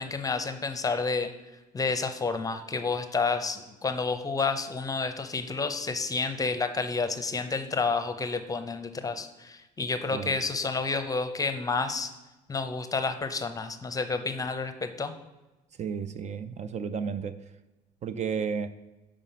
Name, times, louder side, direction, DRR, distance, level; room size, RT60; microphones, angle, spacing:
voice 1, 0.0-1.3 1.7-12.1 12.5-15.1, left 4 dB, 20° left, 0.7 m, -30 dB
voice 2, 15.8-17.5 18.0-18.7, right 6 dB, 45° right, 0.4 m, -32 dB
6.8 x 5.0 x 5.7 m
cardioid pair, 110°, 17 cm